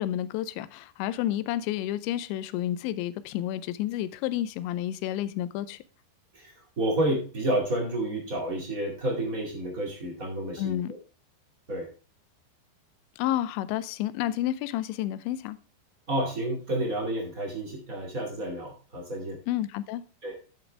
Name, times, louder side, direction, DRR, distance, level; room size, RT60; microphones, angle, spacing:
voice 1, 0.0-5.8 10.6-10.9 13.2-15.6 19.5-20.0, left 13 dB, 80° left, 2.9 m, -30 dB
voice 2, 6.3-11.0 11.7-11.9 16.1-19.4 20.2-20.3, right 1 dB, 35° right, 1.4 m, -30 dB
10.0 x 7.6 x 3.3 m
omnidirectional pair, 5.3 m